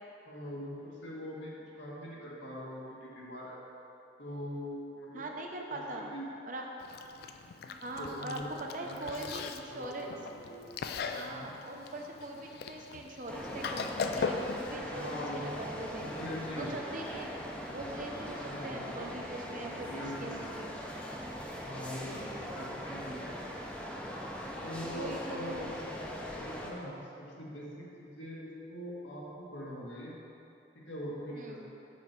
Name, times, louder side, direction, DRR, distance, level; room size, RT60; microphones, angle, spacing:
voice 1, 0.3-3.6 4.2-5.2 5.7-6.3 7.6-8.5 8.8-10.6 11.2-11.5 14.9-15.6 16.0-17.2 17.5-17.7 18.4-18.9 19.9-20.4 20.8-20.9 21.6-23.4 24.6-30.1 30.8-31.7, equal, 90° left, -5 dB, 1.7 m, -43 dB
voice 2, 5.1-6.1 6.5-6.7 7.8-10.1 11.1-16.1 16.6-17.3 17.7-20.7 24.9-25.7 31.4-31.6, right 1 dB, 45° right, 1 dB, 0.7 m, -41 dB
Chewing mastication, 6.8-14.7, left 5 dB, 55° left, 0.3 m, -39 dB
sound 1, 13.3-26.7, equal, 5° left, 0.5 m, -41 dB
7.4 x 4.5 x 5.2 m, 2.9 s
head